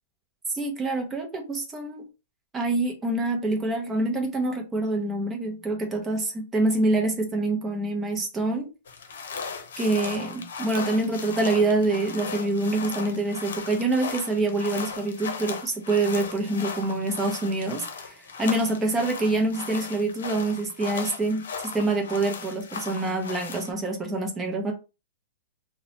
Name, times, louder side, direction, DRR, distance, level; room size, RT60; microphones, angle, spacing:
voice 1, 0.5-2.0 2.5-8.7 9.8-24.7, right 2 dB, 10° right, 0.6 m, -26 dB
sound 1, 8.8-23.7, left 5 dB, 85° left, 0.6 m, -37 dB
2.9 x 2.0 x 2.8 m
supercardioid pair, 175°, 0 cm